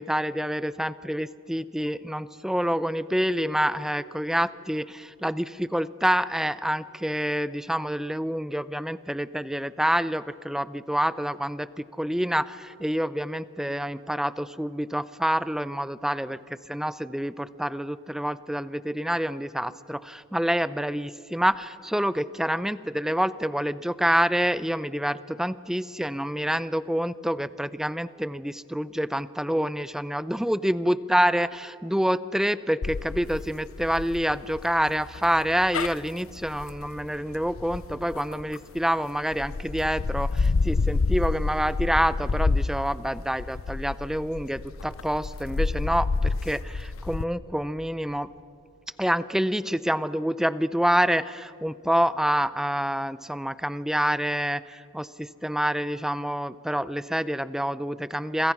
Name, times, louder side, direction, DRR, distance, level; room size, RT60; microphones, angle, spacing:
voice 1, 0.0-48.3 49.0-58.5, equal, ahead, 16 dB, 0.5 m, -27 dB
sound 1, 32.8-38.8 39.3-47.2, left 3 dB, 70° left, 0.6 m, -29 dB
27.0 x 26.0 x 6.0 m, 2.5 s
head